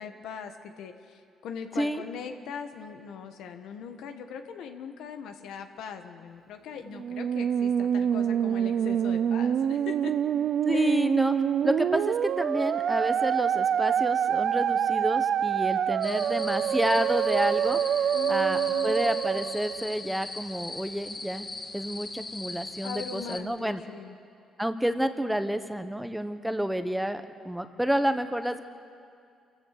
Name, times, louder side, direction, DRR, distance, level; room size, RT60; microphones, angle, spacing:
voice 1, 0.0-10.1 10.7-11.0 18.1-19.0 22.8-24.1, left 7 dB, 85° left, 6 dB, 1.4 m, -40 dB
Musical instrument, 6.9-20.3, right 9 dB, 65° right, 0.4 m, -26 dB
voice 2, 10.6-11.3 11.6-17.8 18.3-21.5 21.7-23.8 24.6-28.6, equal, 5° right, 9 dB, 1.1 m, -29 dB
sound 1, 16.0-23.4, left 2 dB, 30° left, 1.7 m, -39 dB
26.5 x 15.5 x 6.7 m, 2.3 s
cardioid pair, 90°, 0 cm